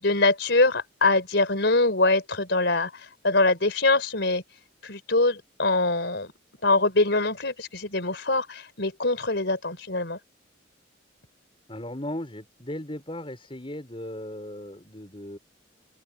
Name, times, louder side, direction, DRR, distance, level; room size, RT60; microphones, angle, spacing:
voice 1, 0.0-2.9 3.2-4.4 4.8-6.3 6.6-10.2, left 2 dB, 60° left, 4.5 m, -23 dB
voice 2, 11.7-15.4, left 1 dB, 25° left, 5.6 m, -37 dB
head